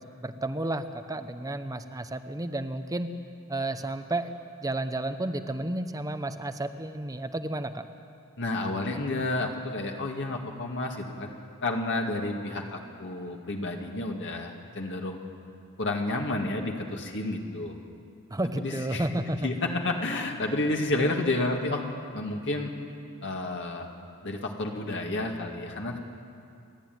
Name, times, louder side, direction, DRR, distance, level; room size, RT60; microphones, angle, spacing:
voice 1, 0.0-3.1 3.5-4.3 4.6-7.8 18.3-19.5, right 1 dB, 15° right, 8 dB, 0.8 m, -32 dB
voice 2, 8.4-11.3 11.6-15.2 15.8-17.8 18.6-21.8 22.1-22.7 23.2-23.9 24.2-26.0, left 2 dB, 55° left, 1 dB, 2.1 m, -30 dB
29.5 x 13.0 x 9.3 m, 2.5 s
head